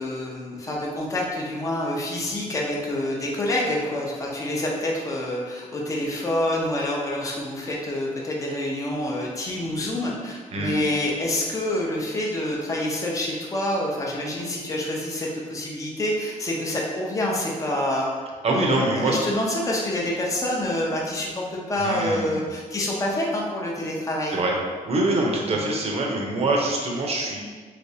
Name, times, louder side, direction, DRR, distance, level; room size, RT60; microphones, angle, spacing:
voice 1, 0.0-18.1 18.5-24.4 25.5-25.6, left 1 dB, 25° left, -3 dB, 0.6 m, -27 dB
voice 2, 18.4-19.3 21.8-22.5 24.3-24.6 24.8-27.4, right 2 dB, 45° right, -1 dB, 0.7 m, -24 dB
3.3 x 3.1 x 2.7 m, 1.5 s
cardioid pair, 105°, 14 cm